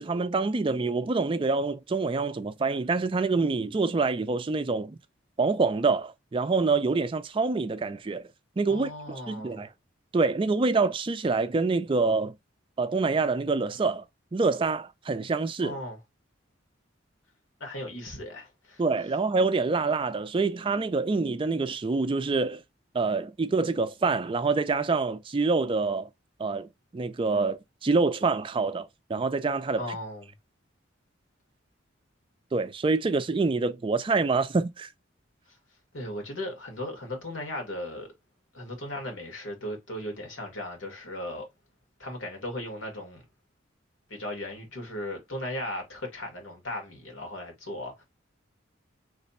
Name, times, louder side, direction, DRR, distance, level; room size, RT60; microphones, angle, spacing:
voice 1, 0.0-5.0 5.4-8.3 8.6-9.7 10.1-12.3 12.8-14.0 14.3-15.7 18.8-22.6 22.9-26.1 26.4-30.0 32.5-34.9, right 4 dB, 25° right, 0.3 m, -26 dB
voice 2, 8.7-9.6 15.6-16.0 17.6-18.8 29.8-30.3 35.5-35.6 35.9-38.1 38.5-41.5 42.0-43.2 44.1-48.0, left 1 dB, 90° left, 1.6 m, -37 dB
3.2 x 2.1 x 4.1 m
head